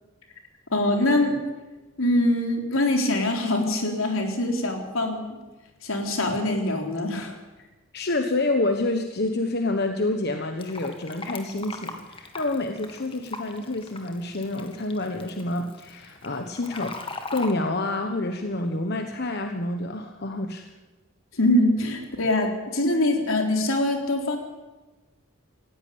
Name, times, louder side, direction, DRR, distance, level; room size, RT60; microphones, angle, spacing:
voice 1, 0.7-1.4 2.0-5.4 5.8-7.4 21.4-24.4, left 1 dB, 80° left, 3 dB, 4.0 m, -23 dB
voice 2, 7.9-17.0 17.3-20.7, left 2 dB, 50° left, 6 dB, 1.2 m, -28 dB
Fill (with liquid), 10.6-17.5, left 3 dB, 25° left, 2.0 m, -40 dB
19.0 x 16.0 x 8.6 m, 1.2 s
head